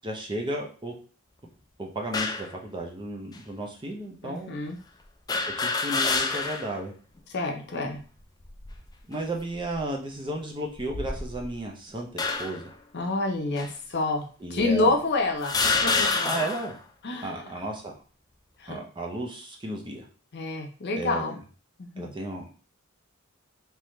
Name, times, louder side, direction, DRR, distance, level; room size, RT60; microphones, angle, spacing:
voice 1, 0.0-0.9 1.8-4.5 5.6-6.9 9.1-12.7 14.4-15.0 16.2-16.8 17.2-17.9 18.7-20.1 21.0-21.4 22.0-22.6, right 1 dB, 20° right, 1 dB, 0.6 m, -34 dB
sound 1, 2.1-2.5 3.3-3.4 5.3-6.7 7.2-7.3 8.4-8.9 9.5-9.8 10.7-11.6 12.2-12.7 13.6-13.7 14.6-14.7 15.4-16.7, left 4 dB, 20° left, 0.4 m, -27 dB
voice 2, 4.2-4.8 7.3-8.0 12.9-16.3 17.0-17.5 18.6-18.8 20.3-21.4 21.8-22.1, left 2 dB, 55° left, 4 dB, 0.7 m, -28 dB
3.7 x 2.8 x 3.1 m, 0.39 s
head